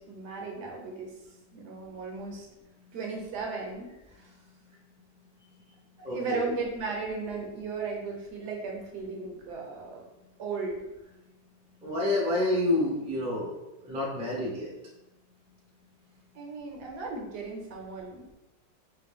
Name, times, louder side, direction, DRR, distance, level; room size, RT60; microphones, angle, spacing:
voice 1, 0.1-1.1 1.5-2.5 2.9-3.9 6.1-10.0 10.4-10.8 16.3-18.3, right 4 dB, 70° right, 0 dB, 1.2 m, -36 dB
voice 2, 6.0-6.5 11.8-13.5 13.8-14.7, left 1 dB, 10° right, -5 dB, 0.3 m, -28 dB
3.9 x 2.2 x 3.6 m, 0.97 s
omnidirectional pair, 2.0 m